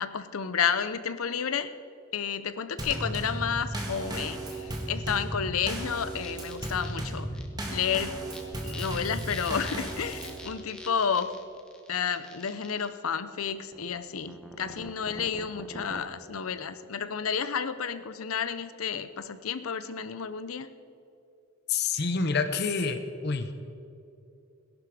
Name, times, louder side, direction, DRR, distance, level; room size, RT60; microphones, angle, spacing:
voice 1, 0.0-1.7 2.1-7.3 7.7-8.3 8.6-11.3 11.9-20.7, left 7 dB, 80° left, 13 dB, 0.7 m, -31 dB
Drum kit / Snare drum / Bass drum, 2.8-10.5, right 1 dB, 20° right, 1.6 m, -35 dB
sound 1, 6.2-7.0 7.3-7.5 8.2-8.4 8.7-12.9 13.7-16.0, equal, 5° left, 1.0 m, -46 dB
voice 2, 21.7-23.5, left 4 dB, 50° left, 8 dB, 0.8 m, -28 dB
17.5 x 11.0 x 5.0 m, 2.6 s
head